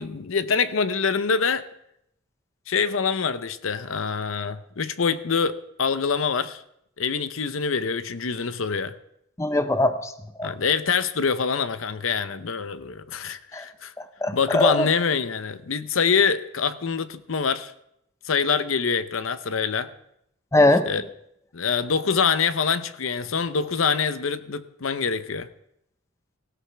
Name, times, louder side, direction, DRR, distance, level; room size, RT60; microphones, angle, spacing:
voice 1, 0.0-1.6 2.7-6.6 7.0-8.9 10.4-13.9 14.3-17.7 18.2-19.9 20.9-21.0 21.5-25.5, left 5 dB, 70° left, 13 dB, 0.7 m, -25 dB
voice 2, 9.4-10.1 10.4-10.5 13.5-13.6 14.0-14.9 20.5-20.9, left 1 dB, 15° left, 10 dB, 0.6 m, -21 dB
17.5 x 16.0 x 3.4 m, 0.76 s
head